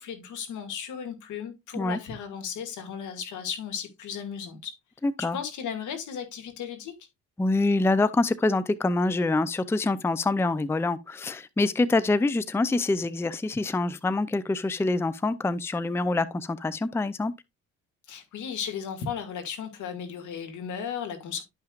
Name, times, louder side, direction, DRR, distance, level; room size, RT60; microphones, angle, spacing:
voice 1, 0.0-4.7 5.2-6.9 18.1-21.4, left 7 dB, 75° left, 2.2 m, -35 dB
voice 2, 5.0-5.4 7.4-17.4, left 2 dB, 10° left, 0.5 m, -25 dB
11.5 x 5.7 x 2.4 m
cardioid pair, 90°, 30 cm